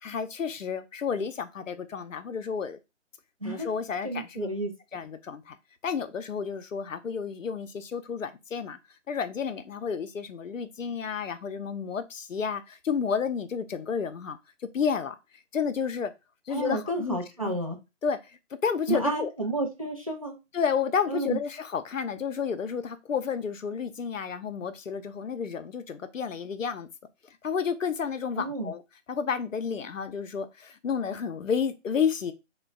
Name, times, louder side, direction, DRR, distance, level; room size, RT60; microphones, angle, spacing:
voice 1, 0.0-2.8 3.4-4.5 4.9-5.6 5.8-8.8 9.1-14.4 14.7-15.2 15.5-16.1 16.5-17.6 18.0-19.3 20.5-26.9 27.2-28.8 29.1-32.3, left 6 dB, 85° left, 0.6 m, -31 dB
voice 2, 4.0-4.7 16.5-17.8 18.9-20.4 21.1-21.4 28.4-28.7, right 2 dB, 30° right, 0.5 m, -31 dB
3.1 x 2.2 x 3.5 m
figure-of-eight pair, 160°, 38 cm